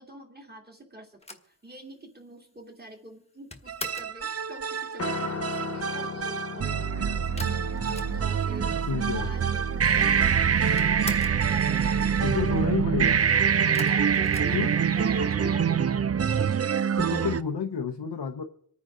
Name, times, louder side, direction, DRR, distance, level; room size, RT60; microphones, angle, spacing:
voice 1, 0.0-7.5 8.1-11.2 11.5-12.2 13.8-15.8, right 2 dB, 25° right, 1 dB, 2.9 m, -45 dB
sound 1, 1.2-4.2 7.4-8.5 8.8-8.9 9.1-9.9 10.2-11.5 13.7-15.2, left 2 dB, 15° left, 1.3 m, -42 dB
sound 2, 3.7-17.4, right 7 dB, 40° right, 0.4 m, -25 dB
Piano, 5.0-13.3, left 6 dB, 40° left, 0.6 m, -40 dB
voice 2, 8.9-9.3 12.2-13.2 14.5-14.7 17.0-18.4, left 6 dB, 90° left, 4 dB, 0.9 m, -30 dB
27.0 x 9.5 x 3.8 m, 0.68 s
wide cardioid pair, 70°, 40 cm